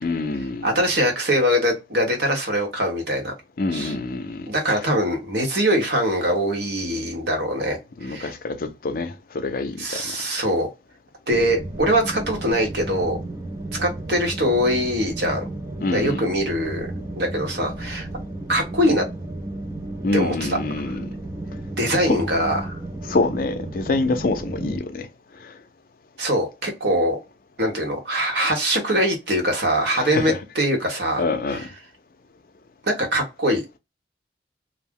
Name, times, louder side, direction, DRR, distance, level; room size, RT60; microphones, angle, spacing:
voice 1, 0.0-0.7 3.6-4.5 8.0-10.2 15.8-16.2 20.0-21.1 21.9-22.2 23.0-25.1 25.4-25.6 29.9-30.4 31.2-31.7, left 3 dB, 50° left, 0.5 m, -26 dB
voice 2, 0.6-3.3 3.7-3.9 4.5-8.3 9.8-10.7 11.3-13.2 13.7-15.5 15.9-16.9 17.2-18.1 18.5-19.0 20.1-20.3 21.8-22.8 26.2-27.2 27.6-31.2 32.9-33.6, equal, 70° right, 1.1 m, -22 dB
sound 1, 11.3-24.8, right 2 dB, 15° right, 0.4 m, -33 dB
2.5 x 2.1 x 3.5 m
head